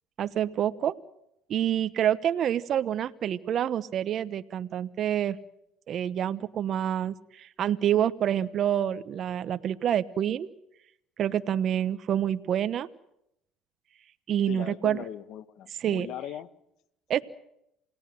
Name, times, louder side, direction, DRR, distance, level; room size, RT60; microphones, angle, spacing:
voice 1, 0.2-0.9 1.5-5.4 5.9-10.5 11.2-12.9 14.3-15.0 15.8-16.1 17.1-17.2, right 10 dB, 55° right, 12 dB, 1.1 m, -27 dB
voice 2, 14.5-16.5, left 10 dB, 65° left, 15 dB, 1.6 m, -39 dB
28.5 x 18.0 x 7.8 m, 0.79 s
supercardioid pair, 75°, 0 cm